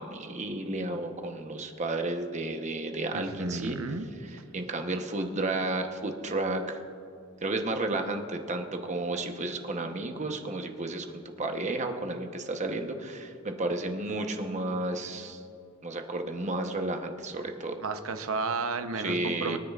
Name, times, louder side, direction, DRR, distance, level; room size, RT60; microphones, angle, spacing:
voice 1, 0.0-3.8 4.5-6.8 7.4-11.1 11.4-15.4 15.8-17.8 19.0-19.6, right 2 dB, 35° right, 5 dB, 0.9 m, -32 dB
voice 2, 3.1-4.1 17.8-19.6, right 4 dB, 80° right, 9 dB, 0.7 m, -32 dB
23.0 x 9.9 x 2.4 m, 2.6 s
head